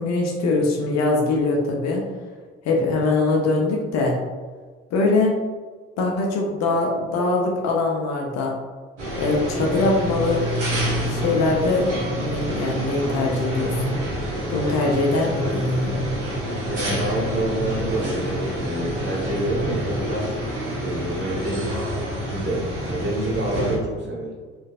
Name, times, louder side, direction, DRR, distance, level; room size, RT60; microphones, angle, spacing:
voice 1, 0.0-2.0 2.6-4.2 4.9-5.4 6.0-8.5 9.2-10.5 11.0-11.9 12.2-14.0 14.5-16.0, left 3 dB, 50° left, 0 dB, 0.6 m, -22 dB
sound 1, 9.0-23.8, equal, 85° right, 0.7 m, -27 dB
voice 2, 16.7-20.4 20.8-21.9 22.2-24.4, right 1 dB, 30° right, -5 dB, 1.3 m, -28 dB
4.4 x 2.4 x 2.4 m, 1.4 s
figure-of-eight pair, 45°, 34 cm